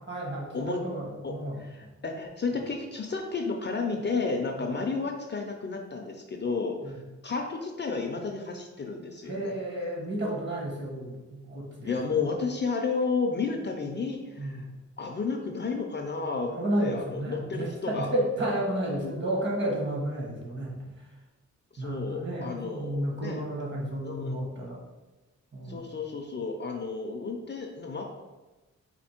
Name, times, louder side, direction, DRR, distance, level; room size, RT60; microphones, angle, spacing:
voice 1, 0.1-1.9 4.6-4.7 6.8-7.0 9.2-12.2 14.4-14.7 16.5-20.9 21.8-24.8 25.5-25.9, right 1 dB, 40° right, -2 dB, 1.2 m, -32 dB
voice 2, 1.2-6.9 7.2-9.6 11.8-14.7 15.0-16.5 16.8-18.1 19.0-19.3 21.7-23.4 24.0-24.4 25.7-28.0, left 4 dB, 40° left, 3 dB, 0.4 m, -32 dB
4.3 x 2.6 x 4.3 m, 1.1 s
wide cardioid pair, 145°, 30 cm